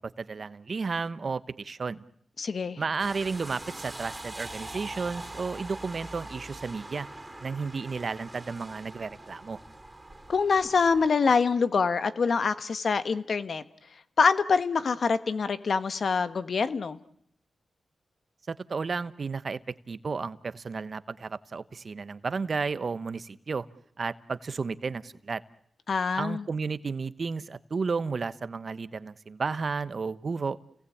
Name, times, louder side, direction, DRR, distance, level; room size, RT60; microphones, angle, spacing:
voice 1, 0.2-2.0 2.8-7.1 7.4-9.6 18.5-19.6 19.9-23.7 24.0-25.4 26.2-30.6, right 4 dB, 55° right, 15 dB, 1.0 m, -33 dB
voice 2, 2.4-2.8 10.3-13.6 14.2-17.0 25.9-26.4, left 5 dB, 65° left, 12 dB, 1.3 m, -25 dB
sound 1, 3.0-11.1, right 2 dB, 15° right, 3.8 m, -43 dB
30.0 x 19.0 x 8.5 m, 0.71 s
cardioid pair, 60°, 0 cm